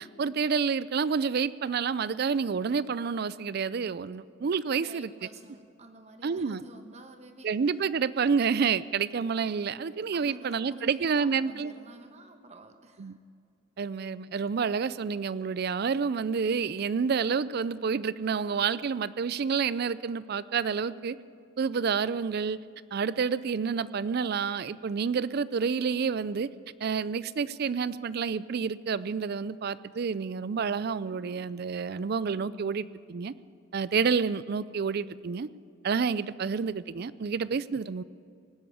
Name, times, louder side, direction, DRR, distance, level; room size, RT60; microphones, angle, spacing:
voice 1, 0.0-5.1 6.2-6.6 7.4-11.7 13.0-13.2 13.8-21.2 21.6-22.6 22.9-26.5 26.8-33.3 33.7-35.5 35.8-38.0, right 6 dB, 55° right, 18 dB, 0.4 m, -29 dB
voice 2, 4.6-7.5 10.1-13.2, right 2 dB, 35° right, 7 dB, 1.2 m, -49 dB
18.5 x 8.3 x 8.6 m, 2.3 s
head